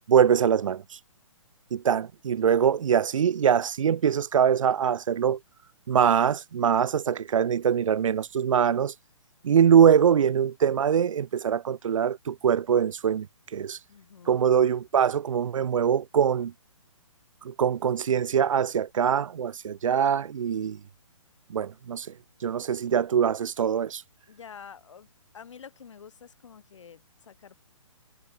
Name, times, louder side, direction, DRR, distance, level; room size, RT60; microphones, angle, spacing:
voice 1, 0.1-0.8 1.7-5.4 5.9-8.9 9.4-13.3 13.5-13.8 14.3-16.5 17.4-20.8 21.5-22.1 22.4-24.0, right 8 dB, 70° right, 0.5 m, -23 dB
voice 2, 13.9-14.5 24.3-25.1 25.3-27.6, left 7 dB, 60° left, 6.5 m, -48 dB
hypercardioid pair, 160°, 17 cm